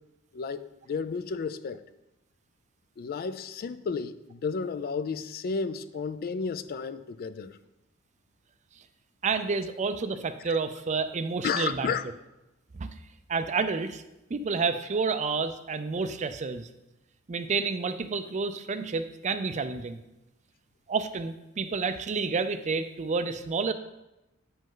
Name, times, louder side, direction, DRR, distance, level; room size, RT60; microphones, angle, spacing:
voice 1, 0.3-1.8 3.0-7.6 10.5-10.6 11.4-12.0, left 5 dB, 45° left, 13 dB, 0.3 m, -32 dB
voice 2, 9.2-11.9 12.8-12.9 13.3-14.0 14.3-16.7 17.3-20.0 20.9-23.7, right 4 dB, 35° right, 10 dB, 0.4 m, -29 dB
8.8 x 5.2 x 3.8 m, 0.95 s
head